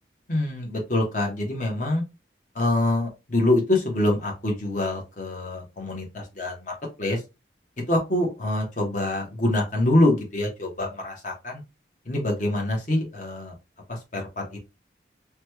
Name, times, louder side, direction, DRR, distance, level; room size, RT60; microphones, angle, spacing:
voice 1, 0.3-2.0 2.5-7.2 7.9-11.6 12.0-13.5 13.9-14.6, left 1 dB, 45° left, 0 dB, 1.0 m, -25 dB
3.1 x 2.2 x 3.0 m, 0.26 s
head